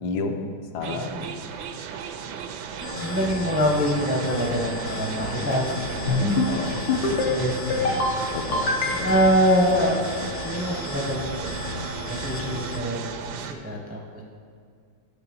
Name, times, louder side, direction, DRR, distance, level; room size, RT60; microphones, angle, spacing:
voice 1, 0.0-1.1 6.5-6.9 8.3-9.1, left 4 dB, 70° left, 4 dB, 1.2 m, -31 dB
voice 2, 0.8-1.3 3.0-8.0 9.0-10.0 10.4-11.5 12.1-14.2, equal, 10° right, 0 dB, 0.5 m, -25 dB
sound 1, 0.8-13.5, right 7 dB, 75° right, 1.1 m, -35 dB
sound 2, 2.8-12.8, left 3 dB, 50° left, 0.8 m, -34 dB
sound 3, 6.1-6.5 6.9-7.3 7.7-8.1 8.5-9.3, left 3 dB, 90° left, 1.8 m, -24 dB
6.7 x 5.6 x 7.0 m, 2.2 s
omnidirectional pair, 1.9 m